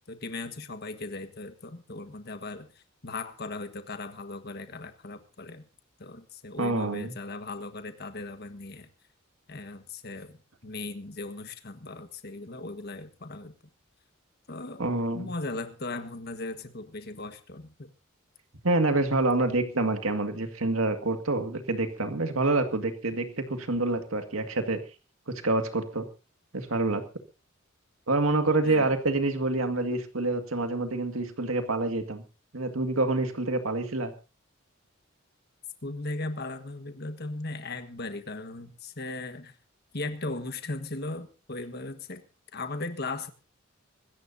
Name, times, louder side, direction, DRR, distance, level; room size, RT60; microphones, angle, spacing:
voice 1, 0.1-5.7 6.0-8.9 9.5-10.4 10.6-13.5 14.5-14.9 15.1-17.9 28.6-28.9 35.8-39.5 39.9-42.2 42.5-43.3, left 2 dB, 50° left, 8 dB, 1.5 m, -37 dB
voice 2, 6.6-7.1 14.8-15.3 18.6-24.8 25.3-26.1 26.5-27.0 28.1-32.2 32.5-34.1, right 2 dB, 80° right, 6 dB, 2.0 m, -27 dB
25.0 x 14.0 x 2.8 m, 0.33 s
head